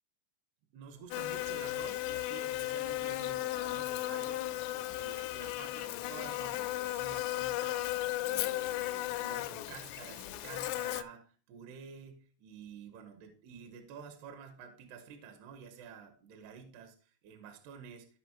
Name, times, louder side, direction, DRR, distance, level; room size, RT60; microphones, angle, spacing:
voice 1, 0.7-4.5 5.0-18.1, right 6 dB, 70° right, 6 dB, 2.6 m, -50 dB
Buzz, 1.1-11.0, left 16 dB, 85° left, 3.1 m, -35 dB
16.0 x 5.3 x 2.9 m, 0.43 s
omnidirectional pair, 5.8 m